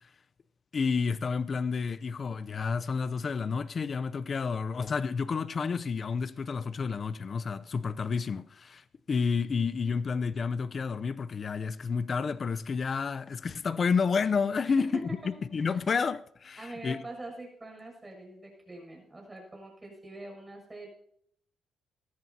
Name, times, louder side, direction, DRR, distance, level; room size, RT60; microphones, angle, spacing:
voice 1, 0.7-17.0, left 5 dB, 45° left, 0.6 m, -30 dB
voice 2, 16.6-20.9, right 2 dB, 20° right, 7.0 m, -44 dB
19.0 x 14.0 x 2.8 m
cardioid pair, 90°, 0 cm